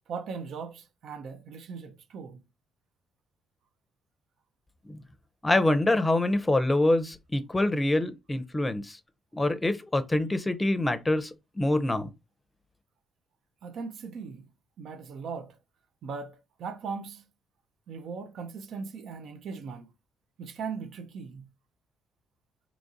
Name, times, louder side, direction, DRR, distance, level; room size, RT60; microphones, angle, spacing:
voice 1, 0.1-2.4 13.6-14.5 14.8-15.6 16.0-17.2 17.9-19.9 20.4-21.5, right 5 dB, 70° right, 0.6 m, -39 dB
voice 2, 5.4-9.0 9.3-12.1, left 2 dB, 20° left, 0.6 m, -25 dB
3.0 x 2.5 x 4.0 m
supercardioid pair, 65°, 0 cm